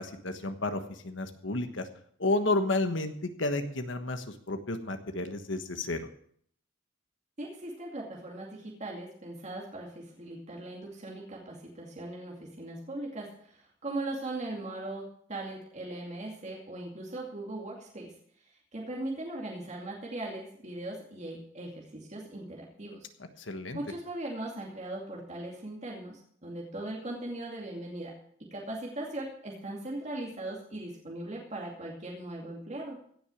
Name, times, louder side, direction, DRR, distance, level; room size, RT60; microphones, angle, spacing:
voice 1, 0.0-1.9 2.2-6.1 23.4-23.8, left 2 dB, 70° left, 8 dB, 1.4 m, -31 dB
voice 2, 7.4-18.1 18.5-23.1 23.7-33.0, right 1 dB, 35° right, -2 dB, 2.5 m, -39 dB
16.5 x 6.4 x 8.5 m, 0.63 s
head